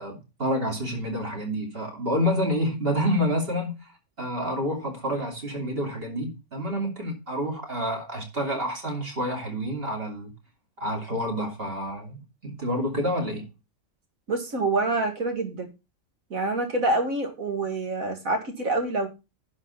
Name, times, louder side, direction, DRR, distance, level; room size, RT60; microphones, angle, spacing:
voice 1, 0.0-3.7 4.2-10.3 10.8-13.4, equal, 45° right, 3.1 m, -28 dB
voice 2, 14.3-15.7 16.3-19.1, right 2 dB, 85° right, 2.5 m, -26 dB
11.0 x 5.4 x 5.5 m
omnidirectional pair, 1.4 m